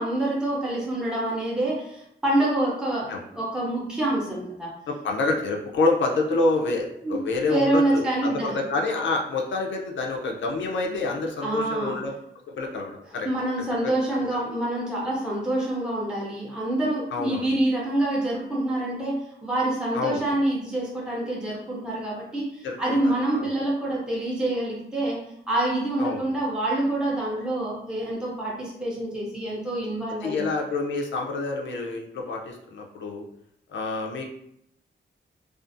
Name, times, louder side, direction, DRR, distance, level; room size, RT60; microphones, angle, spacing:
voice 1, 0.0-4.7 7.0-8.5 10.9-11.0 11.4-12.0 13.2-30.4, right 1 dB, 5° right, -5 dB, 0.5 m, -26 dB
voice 2, 4.9-12.1 12.5-13.3 13.8-13.9 14.2-14.3 17.1-17.5 19.9-20.2 22.6-23.5 26.0-26.3 30.2-33.3 33.7-34.3, left 3 dB, 70° left, 0 dB, 0.4 m, -27 dB
2.5 x 2.3 x 2.5 m, 0.75 s
wide cardioid pair, 155°, 20 cm